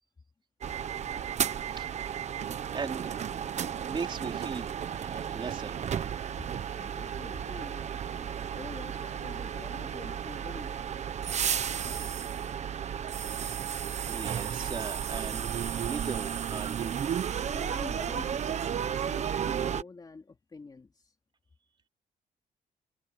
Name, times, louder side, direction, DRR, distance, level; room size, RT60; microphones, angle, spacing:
sound 1, 0.6-19.8, right 8 dB, 50° right, 1.2 m, -33 dB
voice 1, 1.7-2.3 2.7-3.4 3.9-6.0 13.8-17.0, right 5 dB, 35° right, 3.7 m, -39 dB
voice 2, 6.7-11.0 11.8-12.2 17.5-20.9, left 4 dB, 25° left, 2.7 m, -47 dB
cardioid pair, 120°, 15 cm